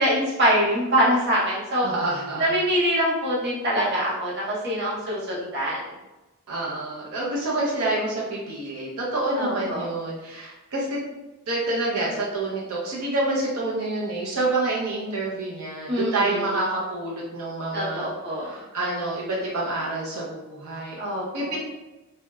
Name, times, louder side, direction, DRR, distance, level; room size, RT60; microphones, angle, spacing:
voice 1, 0.0-1.9 2.4-5.9 9.4-9.9 15.9-16.4 17.7-18.5 21.0-21.6, equal, 50° right, -6 dB, 0.7 m, -24 dB
voice 2, 1.8-2.5 6.5-11.0 11.5-18.1 18.4-21.0 21.3-21.6, right 2 dB, 90° right, -4 dB, 0.6 m, -27 dB
2.8 x 2.1 x 2.2 m, 1.1 s
head